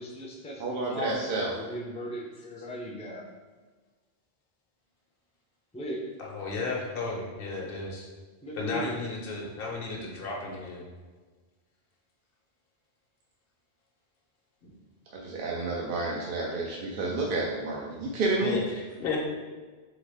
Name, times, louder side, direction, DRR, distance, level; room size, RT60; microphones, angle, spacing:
voice 1, 0.0-3.2 5.7-6.0 8.4-8.9, equal, 10° left, -2 dB, 0.5 m, -37 dB
voice 2, 0.6-1.5 15.1-18.6, right 3 dB, 60° right, -2 dB, 0.7 m, -30 dB
voice 3, 6.2-8.1 8.5-10.8 14.6-14.7 18.4-19.2, left 3 dB, 65° left, -2 dB, 1.0 m, -34 dB
3.9 x 3.5 x 3.5 m, 1.4 s
omnidirectional pair, 1.1 m